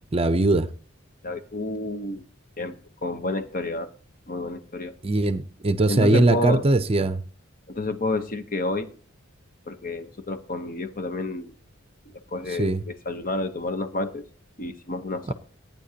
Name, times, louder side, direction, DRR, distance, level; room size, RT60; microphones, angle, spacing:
voice 1, 0.1-0.7 5.0-7.2 12.5-12.8 15.3-15.4, right 2 dB, 30° right, 0.6 m, -21 dB
voice 2, 1.2-2.2 2.6-3.9 4.3-4.9 5.9-6.6 7.7-8.9 9.7-11.5 12.3-14.2 14.6-15.3, left 2 dB, 45° left, 0.9 m, -30 dB
17.0 x 9.3 x 2.9 m
head